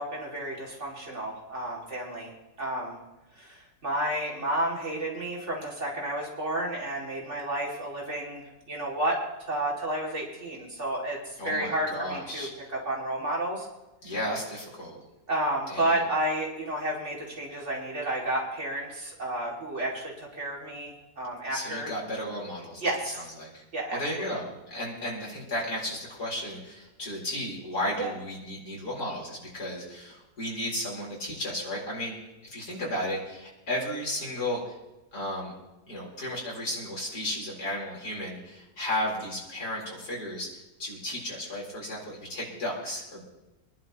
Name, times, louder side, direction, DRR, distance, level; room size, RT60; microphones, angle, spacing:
voice 1, 0.0-2.3 2.6-3.0 3.4-8.4 8.7-9.2 9.5-13.7 15.3-21.9 22.8-23.3 23.7-24.0 28.0-28.1, right 1 dB, 45° right, -2 dB, 2.8 m, -31 dB
voice 2, 11.4-12.5 14.0-15.0 15.7-16.0 21.5-22.8 23.1-23.6 23.9-32.1 32.4-34.7 35.1-35.5 35.9-43.3, left 1 dB, 70° left, -4 dB, 4.7 m, -34 dB
25.5 x 11.0 x 3.0 m, 1.0 s
omnidirectional pair, 1.8 m